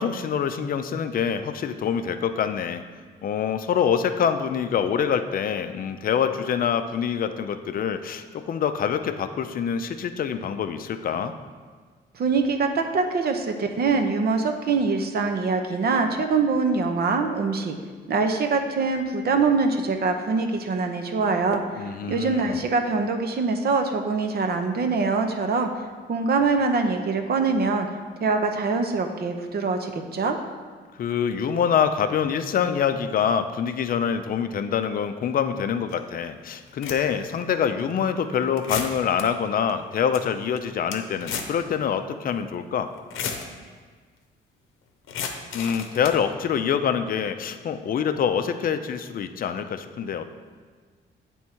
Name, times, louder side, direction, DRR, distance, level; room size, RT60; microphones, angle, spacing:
voice 1, 0.0-2.8 3.2-11.3 21.8-22.7 31.0-42.9 45.5-50.2, left 7 dB, 45° left, 9 dB, 0.5 m, -25 dB
voice 2, 12.2-17.7 18.1-25.7 26.1-27.9 28.2-30.4, right 4 dB, 50° right, 5 dB, 0.7 m, -24 dB
sound 1, 35.9-36.0 36.6-37.3 37.8-37.9 38.6-39.2 39.7-39.8 40.0-40.2 40.6-41.6 41.9-42.0 42.9-43.5 45.1-46.2, left 6 dB, 85° left, 0.7 m, -32 dB
8.4 x 3.6 x 4.4 m, 1.5 s
cardioid pair, 90°, 20 cm